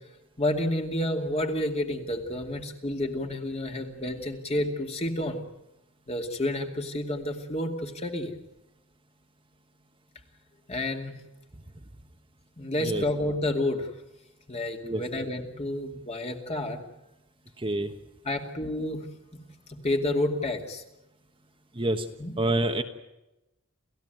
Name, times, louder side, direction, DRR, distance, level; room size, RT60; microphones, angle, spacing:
voice 1, 0.4-5.4 6.1-8.3 10.7-11.2 12.6-13.9 14.5-16.8 18.2-19.0 19.7-20.8 22.2-22.3, left 1 dB, 30° left, 3 dB, 2.5 m, -30 dB
voice 2, 17.6-17.9 21.7-22.1 22.4-22.8, right 1 dB, 25° right, 5 dB, 1.2 m, -27 dB
29.0 x 15.5 x 9.3 m, 0.95 s
head